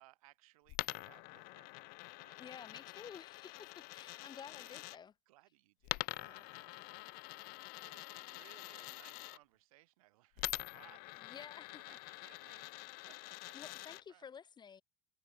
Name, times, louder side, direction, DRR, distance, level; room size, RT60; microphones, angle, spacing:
voice 1, 0.0-1.7 2.1-2.5 4.5-4.8 5.3-13.5 14.1-14.3, right 19 dB, 85° right, 4.7 m, -65 dB
Coin (dropping), 0.7-5.0 5.8-9.4 10.4-14.0, left 27 dB, 60° left, 2.2 m, -45 dB
voice 2, 2.4-5.1 11.2-11.8 13.5-14.8, left 7 dB, 25° left, 6.8 m, -52 dB
supercardioid pair, 135°, 18 cm